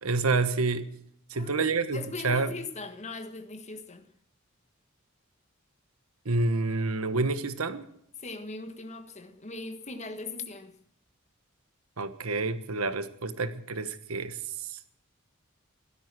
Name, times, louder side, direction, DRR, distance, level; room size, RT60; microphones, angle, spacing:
voice 1, 0.0-0.9 1.3-2.5 6.2-7.8 12.0-14.8, right 3 dB, 90° right, 11 dB, 1.4 m, -28 dB
voice 2, 1.3-4.0 8.2-10.7, left 3 dB, 30° left, 9 dB, 1.5 m, -40 dB
16.0 x 13.0 x 6.1 m, 0.73 s
head